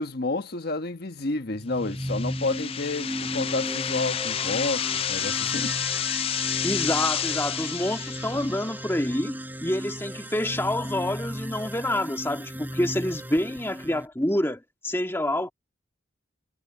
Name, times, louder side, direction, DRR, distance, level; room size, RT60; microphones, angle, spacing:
voice 1, 0.0-5.8, left 2 dB, 55° left, 1.3 m, -30 dB
sound 1, 1.5-14.1, equal, 10° right, 4.6 m, -36 dB
sound 2, 1.8-8.8, left 9 dB, 30° left, 0.4 m, -30 dB
voice 2, 6.6-15.5, left 1 dB, 15° left, 1.9 m, -27 dB
head